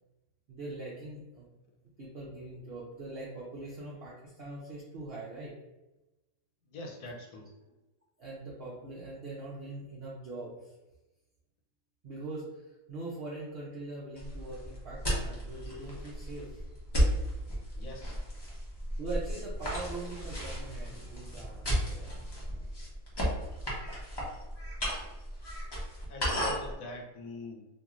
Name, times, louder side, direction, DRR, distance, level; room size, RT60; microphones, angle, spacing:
voice 1, 0.5-1.5 2.0-5.5 8.2-10.7 12.0-16.6 19.0-22.3, right 2 dB, 65° right, -6 dB, 0.6 m, -42 dB
voice 2, 6.7-7.5 17.8-18.2 26.1-27.7, left 2 dB, 75° left, 1 dB, 1.1 m, -43 dB
sound 1, 14.2-26.7, equal, 30° left, 0.4 m, -34 dB
2.9 x 2.7 x 2.4 m, 1.0 s
omnidirectional pair, 1.7 m